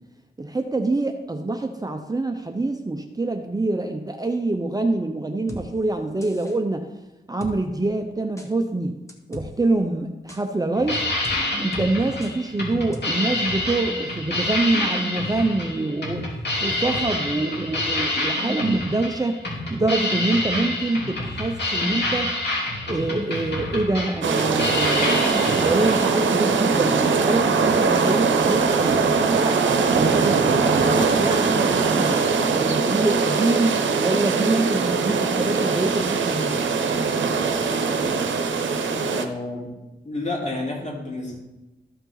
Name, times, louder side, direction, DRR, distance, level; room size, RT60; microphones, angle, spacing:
voice 1, 0.4-6.9 7.3-9.0 9.3-11.0 11.6-16.2 16.6-22.3 22.9-29.6 29.9-30.6 30.9-32.1 32.5-36.6, right 2 dB, 20° right, 5 dB, 0.7 m, -25 dB
sound 1, 5.5-5.6 6.2-6.6 7.4-7.5 8.4-8.5 9.1-9.5 10.3-10.4 11.2-11.4 11.7-11.9 12.2-12.3 12.9-13.0, left 1 dB, 15° left, 1.5 m, -38 dB
sound 2, 10.7-26.0, left 1 dB, 60° left, 3.0 m, -27 dB
sound 3, 24.2-39.3, right 4 dB, 75° right, 0.8 m, -21 dB
voice 2, 38.9-39.7 40.0-41.4, left 2 dB, 40° left, -3 dB, 3.6 m, -30 dB
14.0 x 5.5 x 4.0 m, 1.0 s
cardioid pair, 65°, 19 cm